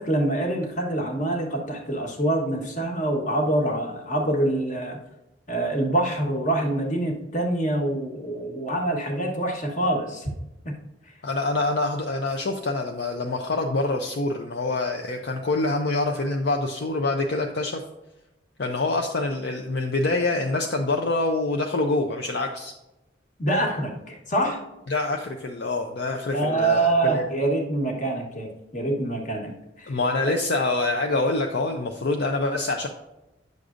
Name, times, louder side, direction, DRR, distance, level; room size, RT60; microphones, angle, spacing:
voice 1, 0.0-5.0 5.5-10.3 10.6-10.7 11.0-11.1 23.4-24.6 26.3-29.5 29.8-30.0, right 1 dB, 40° left, 1 dB, 1.2 m, -25 dB
voice 2, 11.2-17.8 18.6-22.7 24.9-27.2 29.9-32.9, left 2 dB, 60° left, 3 dB, 0.5 m, -26 dB
9.4 x 6.4 x 2.5 m, 0.94 s
head